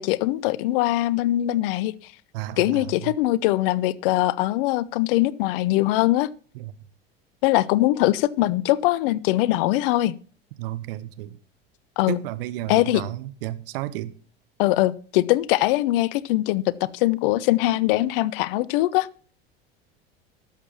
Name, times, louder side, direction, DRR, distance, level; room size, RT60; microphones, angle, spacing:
voice 1, 0.0-1.9 2.6-6.3 7.4-10.1 12.0-12.2 12.7-13.0 14.6-19.1, left 16 dB, 65° left, 21 dB, 0.7 m, -22 dB
voice 2, 2.3-3.1 6.5-6.7 10.6-11.4 12.1-14.1, right 15 dB, 70° right, 15 dB, 1.0 m, -32 dB
12.0 x 7.4 x 5.7 m, 0.41 s
hypercardioid pair, 80°, 30 cm